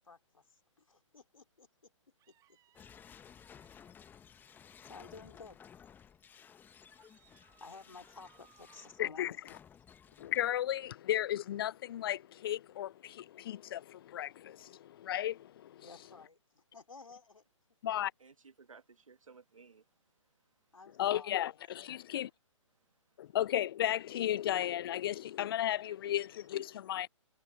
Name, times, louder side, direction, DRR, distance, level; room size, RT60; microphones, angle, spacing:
voice 1, 0.0-1.9 2.3-2.4 4.8-5.6 7.6-9.4 15.8-17.5 20.7-21.6, left 4 dB, 85° left, 3.8 m, -53 dB
sound 1, 2.2-4.0 6.9-8.9, right 14 dB, 20° right, 3.4 m, -68 dB
sound 2, 2.7-10.9, left 8 dB, 10° left, 1.1 m, -57 dB
voice 2, 9.0-9.3 10.2-15.9 17.8-18.1 21.0-22.3 23.2-27.1, left 12 dB, 45° left, 0.5 m, -34 dB
voice 3, 18.2-19.8 25.7-26.1, right 5 dB, 85° right, 1.6 m, -58 dB
figure-of-eight pair, 135°, 17 cm